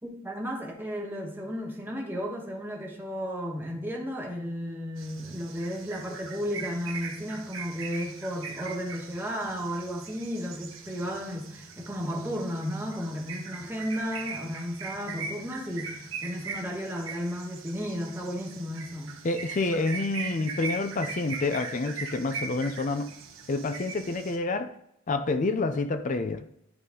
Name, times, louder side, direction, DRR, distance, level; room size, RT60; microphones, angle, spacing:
voice 1, 0.0-19.2, equal, 10° right, 1.3 m, -34 dB
sound 1, 5.0-24.4, right 5 dB, 65° right, 1.2 m, -40 dB
voice 2, 19.2-23.1 23.5-24.7 25.1-26.4, left 3 dB, 35° left, 0.4 m, -28 dB
10.5 x 4.0 x 3.7 m
head